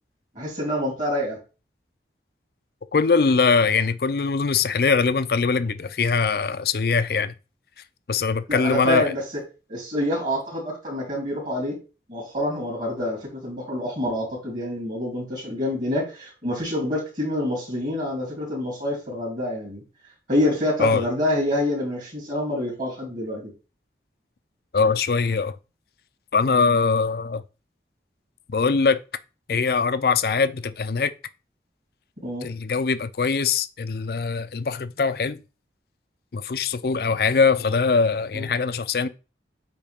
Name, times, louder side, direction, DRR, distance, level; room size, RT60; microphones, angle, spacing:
voice 1, 0.3-1.4 8.5-9.2 9.7-11.8 12.1-19.8 20.3-23.5 26.5-26.6 32.2-32.5 38.3-38.5, left 1 dB, 45° right, 3.2 m, -27 dB
voice 2, 2.9-7.3 8.1-9.1 20.8-21.1 24.7-25.6 26.3-27.4 28.5-29.0 29.5-31.1 32.4-35.4 36.3-39.1, left 5 dB, 55° left, 0.5 m, -22 dB
8.4 x 3.3 x 3.6 m
head